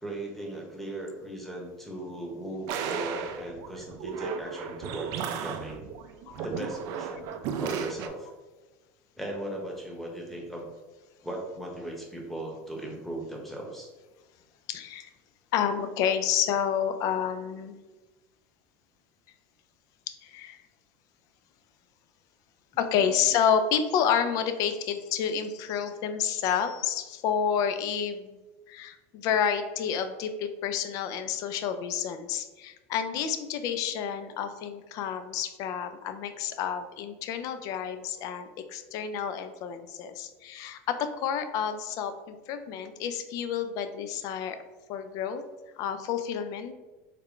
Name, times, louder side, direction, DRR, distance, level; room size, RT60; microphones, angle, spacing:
voice 1, 0.0-5.8 6.4-8.3 9.2-10.7 11.2-13.9 23.0-23.3, right 1 dB, 5° left, -1 dB, 0.9 m, -38 dB
sound 1, 2.7-8.1, right 7 dB, 60° right, 0.3 m, -35 dB
voice 2, 14.7-15.1 15.5-17.8 20.1-20.6 22.8-28.4 28.7-44.6 44.9-45.4 45.8-46.7, left 8 dB, 55° left, 9 dB, 0.4 m, -29 dB
3.5 x 2.2 x 3.6 m, 1.2 s
supercardioid pair, 110°, 7 cm